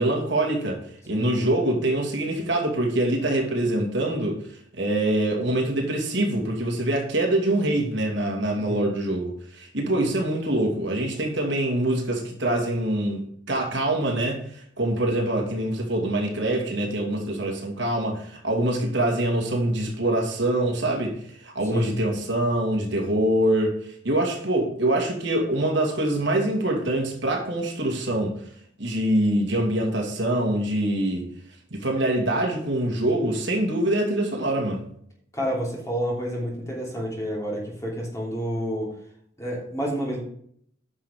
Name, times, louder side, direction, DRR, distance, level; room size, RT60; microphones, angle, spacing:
voice 1, 0.0-4.5 4.8-23.8 24.0-28.3 28.8-31.3 31.7-34.8, right 1 dB, 60° right, 2.4 m, -24 dB
voice 2, 8.6-8.9 21.6-21.9 35.3-38.9 39.4-40.2, equal, 15° left, 3.0 m, -29 dB
10.0 x 6.2 x 5.1 m
head